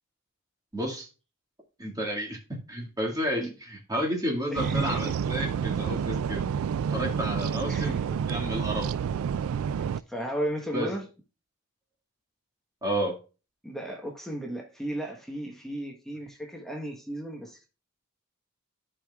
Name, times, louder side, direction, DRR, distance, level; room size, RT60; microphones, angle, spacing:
voice 1, 0.7-1.1 1.8-6.4 6.9-9.0 10.7-10.9 12.8-13.2, equal, 15° right, 2.0 m, -31 dB
voice 2, 4.5-5.1 7.7-8.0 10.1-11.0 13.6-17.7, right 1 dB, ahead, 1.2 m, -35 dB
sound 1, 4.6-10.0, right 7 dB, 70° right, 0.3 m, -29 dB
12.5 x 5.1 x 2.3 m
head